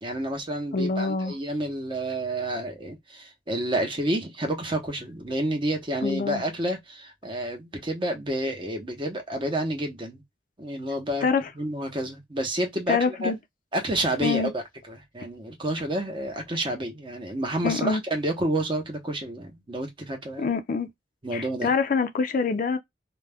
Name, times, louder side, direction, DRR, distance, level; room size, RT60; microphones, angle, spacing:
voice 1, 0.0-10.2 10.6-11.3 11.6-13.3 13.7-20.5 21.2-21.7, right 1 dB, 30° right, 0.7 m, -29 dB
voice 2, 0.7-1.3 6.0-6.4 11.2-11.5 12.9-13.4 14.2-14.5 17.6-18.0 20.4-20.9 21.3-22.8, left 5 dB, 50° left, 0.4 m, -25 dB
2.3 x 2.1 x 3.3 m
head